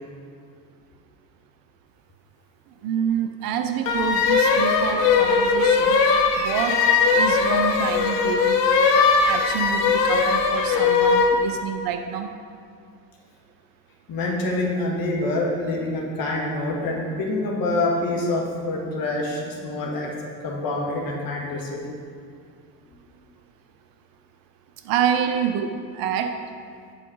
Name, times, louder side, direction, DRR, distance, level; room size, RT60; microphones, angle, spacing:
voice 1, 2.8-6.0 6.4-6.8 7.1-8.6 9.1-12.3 24.8-26.4, right 8 dB, 45° right, 7 dB, 0.6 m, -27 dB
sound 1, 3.9-11.4, left 5 dB, 70° left, 0.9 m, -19 dB
voice 2, 14.1-20.1 20.4-22.0, left 2 dB, 45° left, -1 dB, 1.7 m, -26 dB
8.3 x 4.7 x 5.0 m, 2.2 s
figure-of-eight pair, 55°, 49 cm